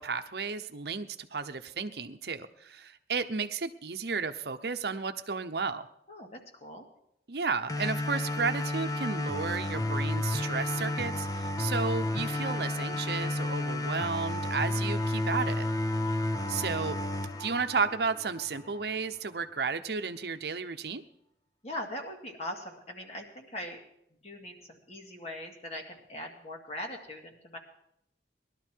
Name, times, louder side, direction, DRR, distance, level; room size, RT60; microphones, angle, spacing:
voice 1, 0.0-5.9 7.3-15.7 16.5-17.0 17.4-21.0, right 5 dB, 65° right, 9 dB, 0.8 m, -33 dB
voice 2, 6.1-6.9 15.9-16.3 21.6-23.8 24.2-27.6, left 1 dB, 35° left, 2 dB, 2.3 m, -41 dB
sound 1, 7.7-18.7, left 1 dB, 20° left, 0.7 m, -31 dB
20.0 x 12.0 x 4.6 m, 0.77 s
head